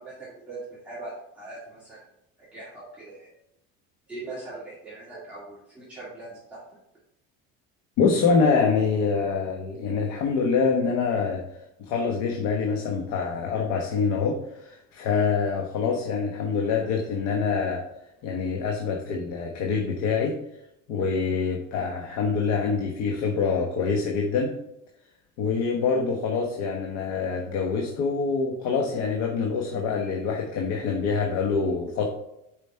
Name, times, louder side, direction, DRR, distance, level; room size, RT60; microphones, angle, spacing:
voice 1, 0.0-2.0 2.4-3.3 4.1-6.6, right 2 dB, 5° right, -11 dB, 2.1 m, -41 dB
voice 2, 8.0-11.4 11.8-17.8 18.2-20.4 20.9-24.5 25.4-32.1, left 5 dB, 80° left, 1 dB, 1.2 m, -25 dB
7.2 x 5.1 x 4.4 m, 0.82 s
cardioid pair, 165°, 29 cm